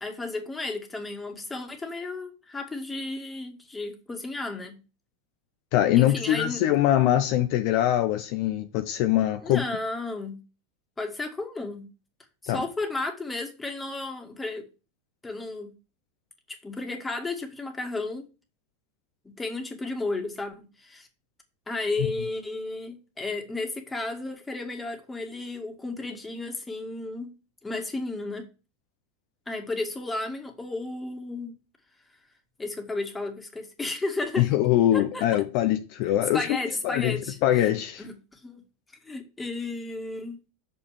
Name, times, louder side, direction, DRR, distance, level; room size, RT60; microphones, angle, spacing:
voice 1, 0.0-4.8 5.9-6.6 9.4-10.4 11.0-11.9 12.4-14.7 15.2-15.7 16.5-18.2 19.2-21.1 21.7-27.3 27.6-28.5 29.5-31.6 32.6-34.5 34.9-35.4 36.3-37.6 38.0-38.6 39.0-40.4, left 2 dB, 15° left, 2.1 m, -33 dB
voice 2, 5.7-9.6 12.5-12.6 34.4-36.5 36.8-37.2 37.4-38.0, left 12 dB, 60° left, 0.8 m, -23 dB
6.5 x 5.5 x 7.2 m
hypercardioid pair, 105°, 0 cm